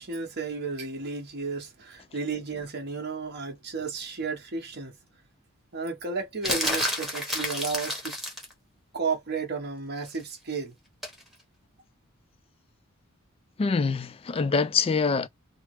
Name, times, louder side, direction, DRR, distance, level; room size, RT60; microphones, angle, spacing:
voice 1, 0.0-5.0 5.7-8.1 8.9-10.7, right 4 dB, 50° right, 1.0 m, -33 dB
sound 1, 6.4-8.5 11.0-11.2, equal, ahead, 1.0 m, -29 dB
voice 2, 13.6-15.3, left 5 dB, 25° left, 0.3 m, -25 dB
3.2 x 2.0 x 3.1 m
head